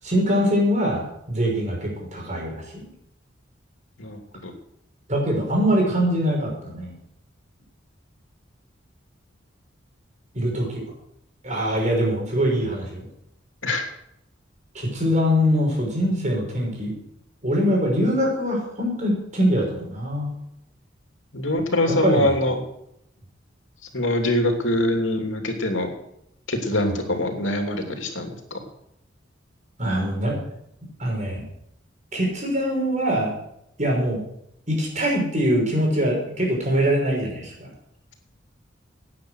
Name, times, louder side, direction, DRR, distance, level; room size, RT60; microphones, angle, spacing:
voice 1, 0.0-2.6 5.1-6.9 10.3-10.8 11.4-13.1 14.7-16.9 17.4-20.3 22.0-22.3 26.7-26.9 29.8-30.4 30.8-31.4 32.1-33.3 33.8-34.2 34.7-37.7, equal, 40° right, -1 dB, 6.0 m, -23 dB
voice 2, 4.0-4.5 13.6-13.8 21.3-22.6 23.9-25.9 26.5-28.6, left 1 dB, 90° left, 4 dB, 2.9 m, -24 dB
17.5 x 9.5 x 6.4 m, 0.77 s
head